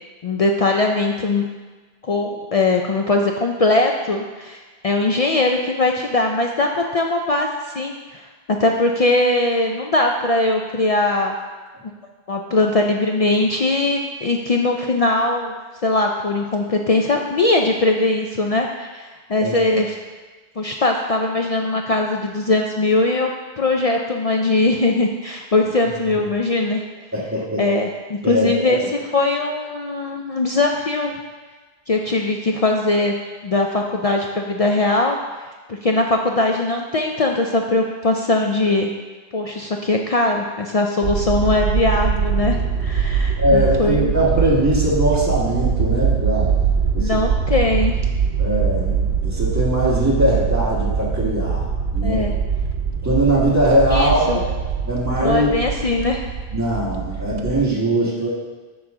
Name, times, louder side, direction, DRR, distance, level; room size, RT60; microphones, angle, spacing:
voice 1, 0.2-1.5 2.0-11.3 12.3-15.5 15.8-20.0 20.6-23.3 23.6-26.8 27.6-31.1 31.9-33.1 33.4-35.2 35.7-38.9 39.3-44.1 47.0-48.0 52.0-52.3 53.9-54.4 55.2-56.3, left 2 dB, 50° left, 2 dB, 0.4 m, -20 dB
voice 2, 27.1-27.6 28.2-28.8 43.4-46.5 46.9-47.2 48.4-51.6 51.9-52.3 53.0-54.4 54.8-55.5 56.5-58.3, equal, 15° right, -6 dB, 1.6 m, -20 dB
sound 1, 41.0-57.7, right 6 dB, 90° right, 0.9 m, -22 dB
10.5 x 3.9 x 3.7 m, 1.3 s
omnidirectional pair, 1.1 m